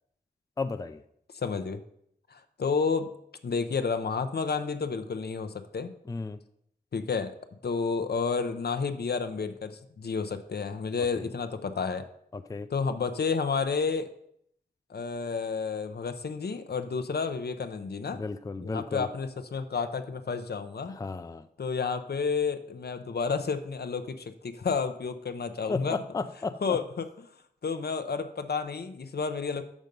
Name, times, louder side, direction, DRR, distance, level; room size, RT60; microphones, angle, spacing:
voice 1, 0.6-1.0 6.1-6.4 11.2-11.3 12.3-12.7 18.1-19.1 20.9-21.5 25.7-26.6, left 3 dB, 20° left, 10 dB, 0.3 m, -34 dB
voice 2, 1.3-1.8 2.3-3.1 3.4-5.9 6.9-7.3 7.6-12.1 12.7-14.1 14.9-18.2 18.6-20.9 21.6-26.0 26.6-27.1 27.6-29.6, left 5 dB, 70° left, 9 dB, 0.6 m, -31 dB
6.6 x 6.2 x 5.2 m, 0.71 s
wide cardioid pair, 90°, 17 cm